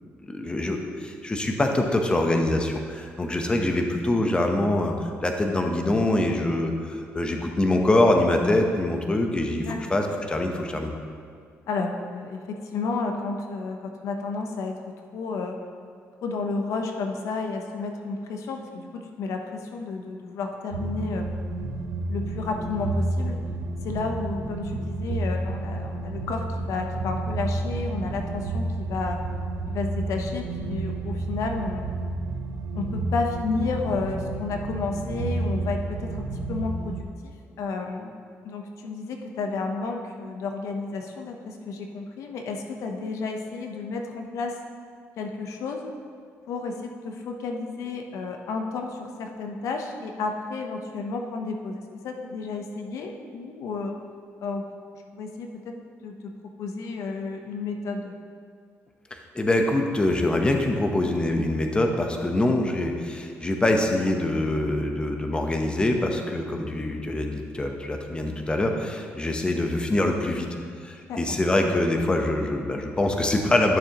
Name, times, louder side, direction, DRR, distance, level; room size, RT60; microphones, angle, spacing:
voice 1, 0.3-10.9 59.3-70.5 70.8-73.8, left 1 dB, 20° left, 3 dB, 0.9 m, -24 dB
voice 2, 9.6-10.0 11.7-14.8 15.1-15.6 16.2-21.4 22.1-23.4 23.8-29.2 29.7-31.8 32.8-37.3 37.6-38.2 38.4-44.6 45.2-45.9 46.5-54.0 54.4-54.7 55.1-55.7 56.0-58.2 71.1-71.4, left 4 dB, 75° left, 3 dB, 0.8 m, -31 dB
sound 1, 20.7-37.0, right 2 dB, 85° right, 0.7 m, -30 dB
12.0 x 6.7 x 3.0 m, 2.1 s
cardioid pair, 95°, 5 cm